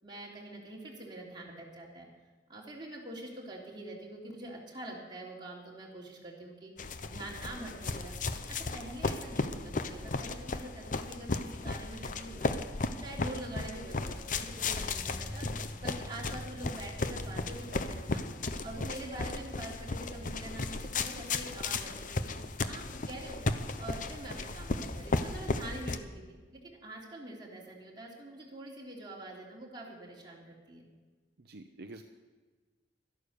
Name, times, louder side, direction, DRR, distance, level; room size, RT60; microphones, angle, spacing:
voice 1, 0.0-2.1 2.5-6.7 7.1-8.2 8.5-12.5 12.9-15.5 15.8-18.2 18.6-22.3 22.7-23.4 23.8-30.8, right 1 dB, 25° right, -3 dB, 3.3 m, -45 dB
sound 1, 6.8-26.0, left 3 dB, 50° left, 0.8 m, -35 dB
sound 2, 14.3-25.1 25.3-25.4, equal, ahead, 1.3 m, -49 dB
voice 2, 31.4-32.0, right 2 dB, 65° right, 6 dB, 0.7 m, -47 dB
13.0 x 11.5 x 6.9 m, 1.4 s
head